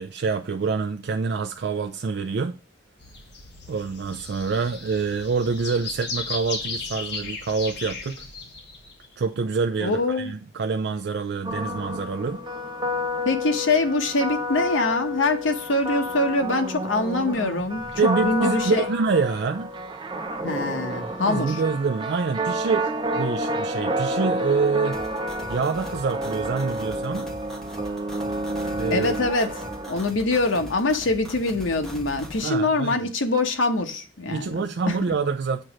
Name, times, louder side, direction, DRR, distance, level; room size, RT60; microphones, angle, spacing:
voice 1, 0.0-2.6 3.7-8.2 9.2-12.4 17.9-19.7 21.3-22.9 23.1-25.0 25.5-27.3 28.8-29.1 32.4-33.1 34.3-35.6, right 5 dB, 60° right, 0.4 m, -26 dB
sound 1, 3.0-9.1, left 4 dB, 60° left, 1.4 m, -36 dB
voice 2, 9.8-10.3 13.2-18.8 20.4-21.6 28.9-29.5 29.9-35.0, left 2 dB, 80° left, 1.0 m, -24 dB
sound 2, 11.4-30.0, equal, 25° right, 0.7 m, -30 dB
sound 3, 24.9-32.4, equal, ahead, 1.1 m, -41 dB
7.7 x 3.0 x 6.2 m
head